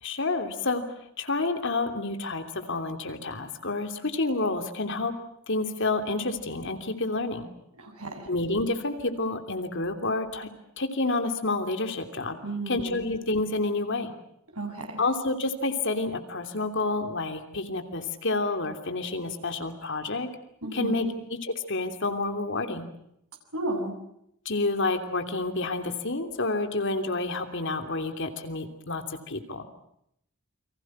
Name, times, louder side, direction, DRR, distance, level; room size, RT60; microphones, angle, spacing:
voice 1, 0.0-0.8 1.2-5.1 5.5-7.5 8.2-10.5 10.8-12.4 12.7-14.1 15.0-20.3 20.7-22.9 24.4-29.6, left 2 dB, 60° left, 7 dB, 3.0 m, -29 dB
voice 2, 7.8-8.3 12.4-12.9 14.5-15.0 20.6-21.1 23.5-24.0, right 2 dB, 90° right, 2 dB, 7.6 m, -33 dB
29.5 x 24.5 x 6.1 m, 0.75 s
head